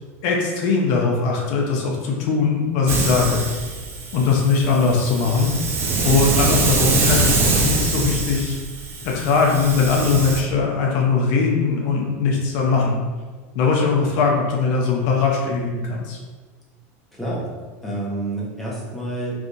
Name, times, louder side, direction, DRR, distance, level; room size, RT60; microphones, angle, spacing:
voice 1, 0.2-3.4 4.1-5.5 6.0-8.6 9.0-13.0 13.5-16.2, left 4 dB, 60° left, -1 dB, 0.6 m, -20 dB
Hiss, 2.9-10.4, right 3 dB, 30° right, 0.6 m, -23 dB
voice 2, 17.1-17.5 17.8-19.4, right 1 dB, ahead, -7 dB, 0.9 m, -28 dB
3.4 x 2.6 x 2.5 m, 1.4 s
supercardioid pair, 120°, 8 cm